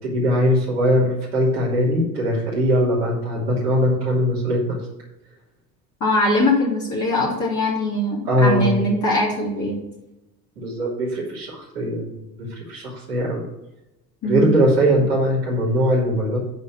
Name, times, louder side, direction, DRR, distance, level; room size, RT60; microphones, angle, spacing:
voice 1, 0.0-4.8 8.2-8.8 10.6-13.4 14.2-16.4, equal, 75° right, -10 dB, 3.3 m, -21 dB
voice 2, 6.0-9.8 14.2-14.5, left 1 dB, 35° left, -5 dB, 3.2 m, -21 dB
12.5 x 4.4 x 6.3 m, 0.93 s
figure-of-eight pair, 60°, 49 cm